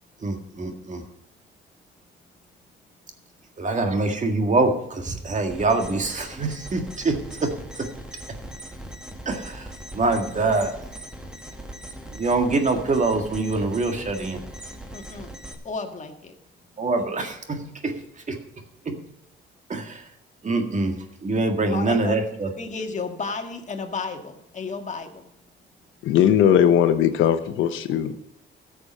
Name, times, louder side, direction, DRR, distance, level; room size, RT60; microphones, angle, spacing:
voice 1, 0.2-1.0 3.6-7.5 9.3-9.7 9.9-10.7 12.1-14.4 16.8-18.0 18.3-18.4 18.9-19.0 19.7-20.0 20.4-22.5, right 3 dB, 40° right, 5 dB, 1.8 m, -24 dB
sound 1, 5.5-15.5, right 1 dB, 5° right, 1.9 m, -40 dB
voice 2, 14.9-15.3 15.6-16.4 21.7-25.3, left 4 dB, 35° left, 5 dB, 1.7 m, -33 dB
voice 3, 26.0-28.1, left 9 dB, 85° left, 9 dB, 0.9 m, -19 dB
13.5 x 6.9 x 5.4 m, 0.79 s
cardioid pair, 90°, 20 cm